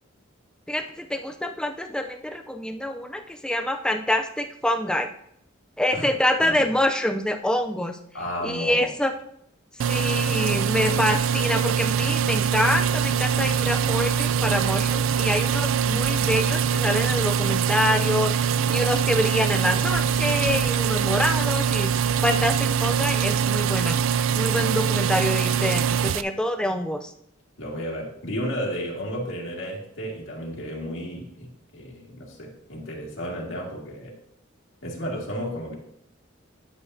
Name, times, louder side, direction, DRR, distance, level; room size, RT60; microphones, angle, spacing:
voice 1, 0.7-5.1 5.8-8.0 8.4-9.1 9.8-21.9 22.2-24.0 24.3-27.1, left 1 dB, 5° left, 5 dB, 0.5 m, -26 dB
voice 2, 8.1-8.9 18.7-18.8 24.6-25.0 27.6-34.1 34.8-35.7, equal, 70° left, -3 dB, 2.2 m, -33 dB
sound 1, 9.8-26.2, right 7 dB, 70° right, 0.3 m, -23 dB
11.5 x 6.9 x 2.8 m, 0.73 s
head